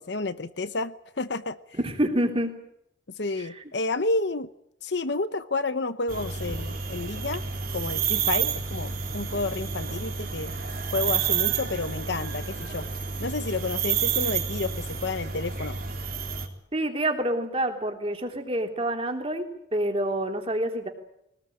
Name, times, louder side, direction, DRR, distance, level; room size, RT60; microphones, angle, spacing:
voice 1, 0.0-1.6 3.2-4.5 4.8-7.4 7.7-10.5 10.9-12.9 13.2-15.8, left 3 dB, 65° left, 12 dB, 0.9 m, -30 dB
voice 2, 1.8-2.6 3.4-3.6 16.7-19.4 19.7-20.9, right 1 dB, 30° right, 4 dB, 3.4 m, -27 dB
sound 1, 6.1-16.5, right 7 dB, 50° right, 3.6 m, -30 dB
22.5 x 19.5 x 8.8 m, 0.77 s
head